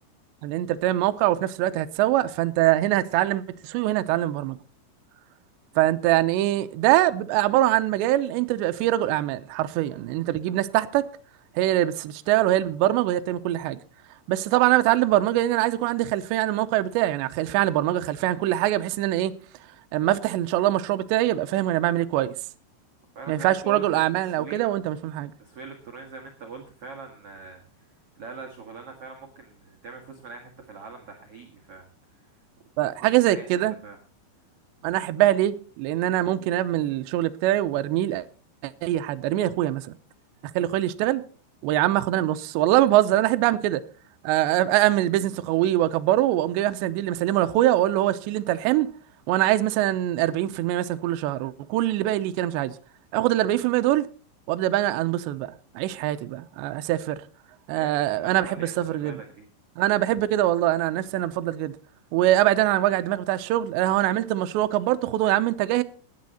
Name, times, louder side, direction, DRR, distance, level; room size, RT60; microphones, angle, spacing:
voice 1, 0.4-4.6 5.8-11.1 11.6-13.8 14.3-19.4 19.9-22.4 23.3-25.3 32.8-33.8 34.8-38.3 38.6-39.9 40.6-41.2 41.6-43.8 44.2-48.9 49.3-52.7 53.1-54.1 54.5-57.2 57.7-59.2 59.8-61.7 62.1-65.8, right 14 dB, 80° right, 2.7 m, -23 dB
voice 2, 23.1-24.6 25.4-27.6 28.1-31.8 32.2-32.3 32.8-32.9 33.3-34.0 34.8-34.9 57.7-59.4, right 4 dB, 55° right, 1.7 m, -42 dB
17.0 x 10.5 x 4.2 m
omnidirectional pair, 5.6 m